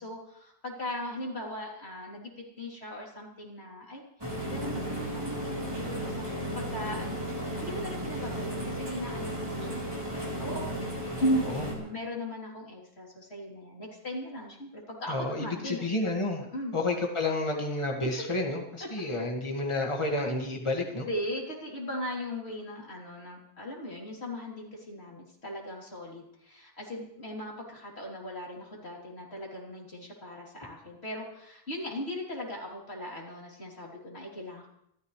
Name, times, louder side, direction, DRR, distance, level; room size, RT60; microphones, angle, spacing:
voice 1, 0.0-10.7 11.2-15.8 16.5-16.8 18.2-18.3 18.8-18.9 21.0-34.7, equal, 90° left, -3 dB, 3.9 m, -38 dB
sound 1, 4.2-11.7, right 1 dB, 25° right, 3.9 m, -34 dB
voice 2, 15.1-16.4 16.7-21.1, left 2 dB, 30° left, 0 dB, 2.0 m, -30 dB
27.0 x 13.5 x 3.3 m, 0.74 s
omnidirectional pair, 1.1 m